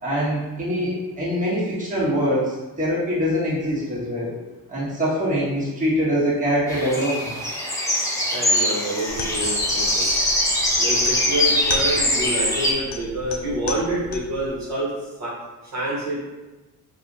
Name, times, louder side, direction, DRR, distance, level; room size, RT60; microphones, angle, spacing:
voice 1, 0.0-4.3 4.7-7.3, equal, 20° right, -8 dB, 1.4 m, -23 dB
sound 1, 6.7-12.7, left 1 dB, 10° left, 0.9 m, -22 dB
voice 2, 8.3-10.1 10.8-14.9 15.2-15.3 15.7-16.2, right 1 dB, 50° right, -7 dB, 1.2 m, -27 dB
sound 2, 9.1-14.5, left 4 dB, 90° left, 0.6 m, -35 dB
2.7 x 2.5 x 3.8 m, 1.2 s
supercardioid pair, 80°, 36 cm